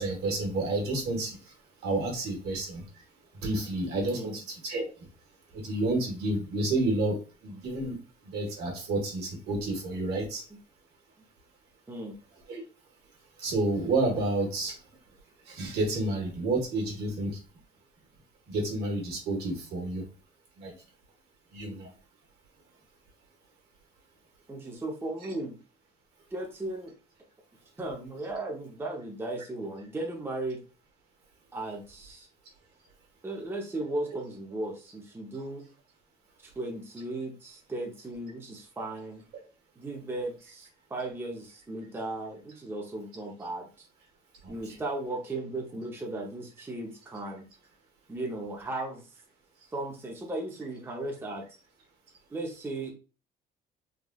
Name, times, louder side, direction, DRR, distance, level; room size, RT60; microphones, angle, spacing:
voice 1, 0.0-1.4 1.8-2.8 3.4-4.8 5.6-7.2 7.4-8.0 8.3-10.4 12.5-12.6 13.4-14.7 15.5-17.3 18.5-20.0 20.6-20.7 21.5-21.9 25.2-25.3, right 2 dB, 70° right, 1 dB, 1.3 m, -30 dB
voice 2, 24.5-25.6 26.3-26.9 27.8-30.6 31.5-32.3 33.2-35.6 36.4-39.2 39.8-43.9 44.5-47.4 48.1-49.0 49.7-51.5 52.3-52.9, right 2 dB, 15° right, 0 dB, 0.6 m, -36 dB
3.5 x 2.3 x 2.2 m, 0.34 s
cardioid pair, 110°, 17 cm